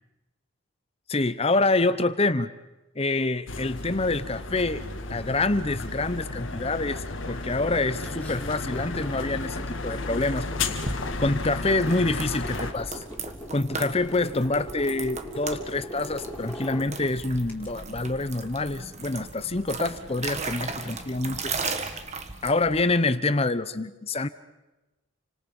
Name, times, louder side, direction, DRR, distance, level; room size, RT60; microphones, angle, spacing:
voice 1, 1.1-2.5 2.9-10.5 10.9-13.0 13.5-21.5 22.4-24.3, left 2 dB, 30° left, 14 dB, 0.9 m, -26 dB
sound 1, 3.5-12.7, left 3 dB, 60° left, 1.9 m, -33 dB
sound 2, 7.6-17.7, equal, 10° left, 4.0 m, -41 dB
sound 3, 10.8-22.9, right 4 dB, 30° right, 1.7 m, -37 dB
29.5 x 25.5 x 5.5 m, 1.1 s
head